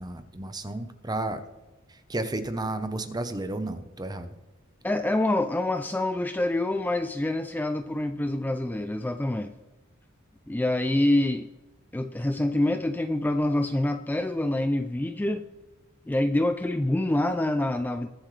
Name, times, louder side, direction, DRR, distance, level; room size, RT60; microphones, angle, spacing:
voice 1, 0.0-1.4 1.9-4.3, right 2 dB, 20° right, 9 dB, 0.9 m, -32 dB
voice 2, 4.8-9.5 10.5-11.5 11.9-15.5 16.1-18.1, left 1 dB, 10° left, 7 dB, 0.4 m, -26 dB
21.5 x 7.8 x 3.3 m, 1.1 s
head